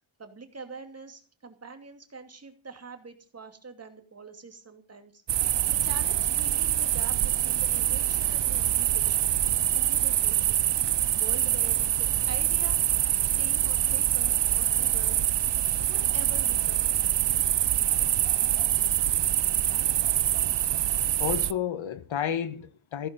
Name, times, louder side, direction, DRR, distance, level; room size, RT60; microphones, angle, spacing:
voice 1, 0.2-9.2 9.7-10.9 11.2-12.8 13.2-15.2 15.9-17.2, right 4 dB, 30° right, 2.6 m, -45 dB
sound 1, 5.3-21.5, right 12 dB, 60° right, 0.6 m, -25 dB
voice 2, 21.2-23.1, left 9 dB, 70° left, 1.4 m, -31 dB
15.5 x 14.0 x 5.3 m
wide cardioid pair, 165°, 48 cm